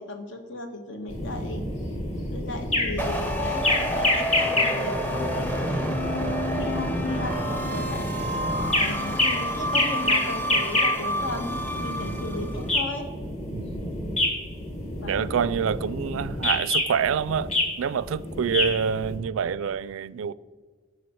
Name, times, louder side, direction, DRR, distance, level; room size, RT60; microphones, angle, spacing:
voice 1, 0.0-1.6 2.3-6.3 6.5-8.1 8.7-13.1 14.9-15.5, left 2 dB, 70° left, 1.4 m, -36 dB
sound 1, 1.1-19.2, left 1 dB, 30° left, 1.7 m, -28 dB
sound 2, 3.0-12.6, equal, 10° left, 0.7 m, -29 dB
voice 2, 12.0-12.5 13.5-13.9 15.0-17.5 17.8-20.3, right 7 dB, 85° right, 0.4 m, -27 dB
11.0 x 4.9 x 6.3 m
head